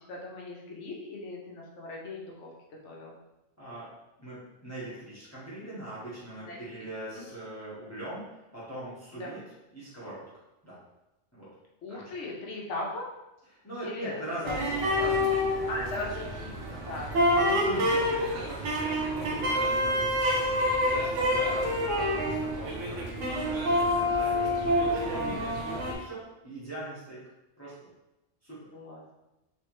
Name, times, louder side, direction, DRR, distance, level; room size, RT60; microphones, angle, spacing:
voice 1, 0.1-2.5 2.8-3.2 6.5-6.6 7.1-7.2 9.2-9.4 11.8-13.1 13.8-14.1 14.4-14.5 15.7-16.6 16.8-17.4 28.7-29.0, left 2 dB, 70° left, -2 dB, 1.1 m, -38 dB
voice 2, 3.6-3.9 4.2-9.4 9.7-10.2 10.6-10.8 11.3-11.5 11.9-12.3 13.5-16.0 16.6-17.0 17.3-25.5 25.9-27.2 27.6-27.9 28.4-28.7, right 1 dB, 15° left, -10 dB, 1.1 m, -41 dB
sound 1, 14.4-25.9, left 1 dB, 75° right, 1.0 m, -27 dB
3.5 x 3.2 x 3.0 m, 0.96 s
omnidirectional pair, 1.3 m